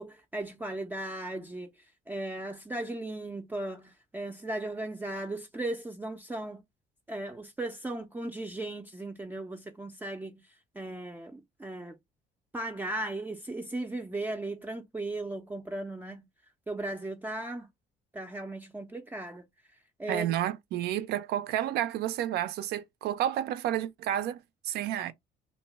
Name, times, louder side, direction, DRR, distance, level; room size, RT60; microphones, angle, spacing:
voice 1, 0.0-1.7 2.1-6.6 7.1-10.4 10.8-12.0 12.5-16.3 16.7-17.7 18.1-19.4 20.0-20.3, right 2 dB, 10° right, 0.4 m, -36 dB
voice 2, 20.1-25.1, right 12 dB, 75° right, 0.4 m, -31 dB
2.6 x 2.1 x 3.2 m
cardioid pair, 110°, 17 cm